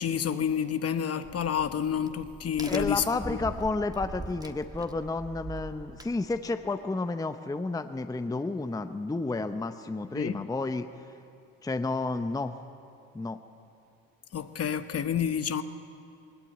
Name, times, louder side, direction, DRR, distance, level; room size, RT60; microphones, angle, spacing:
voice 1, 0.0-3.4 10.1-10.4 14.3-15.6, left 8 dB, 35° left, 1.0 m, -29 dB
Crack, 1.2-6.7, right 2 dB, 10° right, 1.3 m, -42 dB
voice 2, 2.7-10.9 11.6-12.5 13.1-13.4, left 3 dB, 10° left, 0.8 m, -31 dB
20.0 x 18.0 x 8.9 m
supercardioid pair, 75°, 40 cm